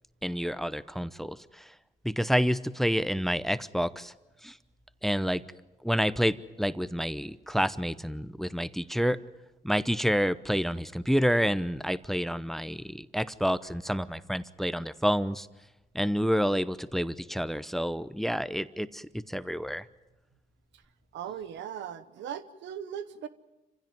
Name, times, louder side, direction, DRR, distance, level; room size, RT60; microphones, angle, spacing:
voice 1, 0.2-1.7 2.0-4.1 4.4-4.6 5.0-5.4 5.8-9.2 9.6-15.5 15.9-19.9, equal, ahead, 16 dB, 0.8 m, -29 dB
voice 2, 21.1-23.3, right 9 dB, 85° right, 13 dB, 1.1 m, -38 dB
26.5 x 16.0 x 9.4 m, 1.0 s
cardioid pair, 70°, 18 cm